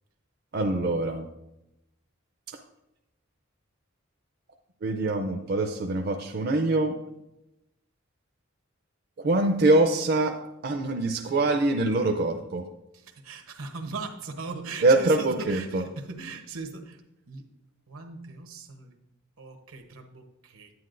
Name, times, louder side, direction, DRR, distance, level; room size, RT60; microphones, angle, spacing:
voice 1, 0.5-1.2 2.5-2.6 4.8-7.0 9.2-12.7 14.8-15.8, right 2 dB, 50° right, 4 dB, 0.5 m, -24 dB
voice 2, 12.9-17.0 17.3-17.5 17.9-19.0 19.4-20.7, right 4 dB, 80° right, 5 dB, 1.0 m, -39 dB
9.5 x 8.9 x 2.6 m, 0.89 s
head